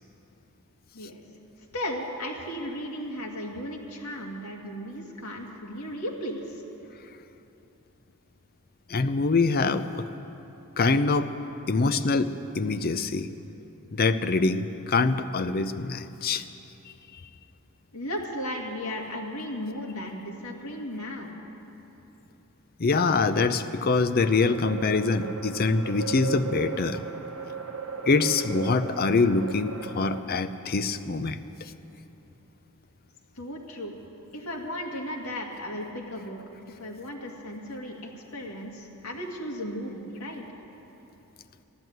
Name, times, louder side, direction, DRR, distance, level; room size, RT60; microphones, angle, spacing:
voice 1, 1.7-6.6 17.9-21.3 33.4-33.9 34.3-36.4 36.8-40.5, equal, 80° left, 0 dB, 2.0 m, -35 dB
voice 2, 8.9-9.8 10.8-11.3 11.7-13.3 13.9-16.4 22.8-27.0 28.1-31.4, left 3 dB, 45° left, 11 dB, 0.5 m, -24 dB
sound 1, 24.2-30.2, right 6 dB, 65° right, 1.0 m, -37 dB
14.0 x 11.0 x 7.9 m, 3.0 s
head